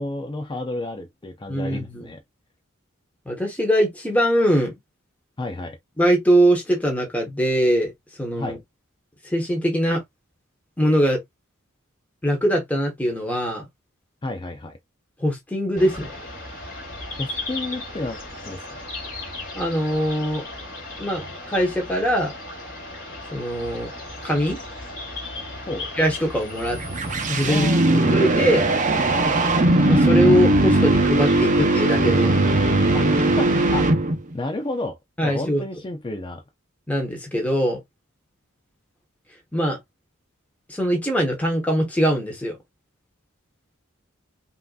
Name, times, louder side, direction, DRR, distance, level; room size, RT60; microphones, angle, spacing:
voice 1, 0.0-2.2 5.4-5.8 8.4-8.6 14.2-14.7 17.2-18.2 18.4-18.6 25.7-25.9 27.5-28.2 32.9-33.1 33.4-34.0 34.3-36.4, left 2 dB, 25° left, 0.5 m, -31 dB
voice 2, 1.5-2.1 3.3-4.7 6.0-7.9 8.2-8.6 9.2-10.0 10.8-11.2 12.2-13.7 15.2-16.1 19.5-20.4 21.0-22.3 23.3-23.9 24.2-24.6 25.9-26.8 27.3-27.7 28.1-28.6 29.8-32.4 35.2-35.6 36.9-37.8 39.5-39.8 40.7-42.6, equal, 5° left, 1.1 m, -22 dB
sound 1, 15.8-33.9, left 1 dB, 45° left, 2.9 m, -35 dB
sound 2, 26.5-34.3, right 2 dB, 35° right, 0.8 m, -19 dB
5.5 x 2.7 x 2.4 m
head